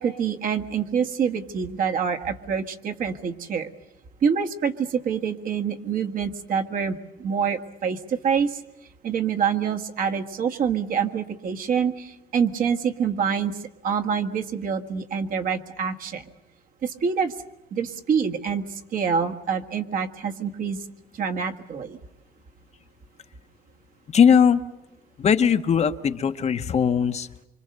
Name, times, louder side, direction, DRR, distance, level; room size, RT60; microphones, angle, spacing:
voice 1, 0.0-3.7 4.2-8.6 9.0-13.5 13.8-16.2 16.8-17.3 17.7-20.8 21.1-22.0, right 6 dB, 55° right, 5 dB, 1.7 m, -26 dB
voice 2, 24.1-24.6 25.2-27.4, left 7 dB, 40° left, 9 dB, 1.0 m, -19 dB
25.5 x 25.0 x 6.7 m, 0.96 s
cardioid pair, 110°, 17 cm